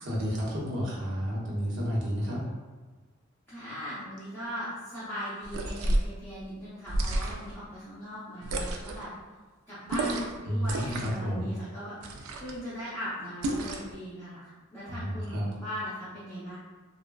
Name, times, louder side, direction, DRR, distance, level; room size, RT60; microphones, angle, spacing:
voice 1, 0.1-2.4 10.5-11.5 14.9-15.5, equal, 55° right, -5 dB, 0.7 m, -31 dB
voice 2, 3.5-9.1 9.7-16.5, equal, 10° left, -13 dB, 0.6 m, -39 dB
sound 1, 5.4-6.1 6.9-7.6 8.4-9.0 9.9-10.4 10.6-11.2 12.0-12.6 13.4-13.9, right 1 dB, 90° right, 0.3 m, -31 dB
3.4 x 2.0 x 2.2 m, 1.3 s
head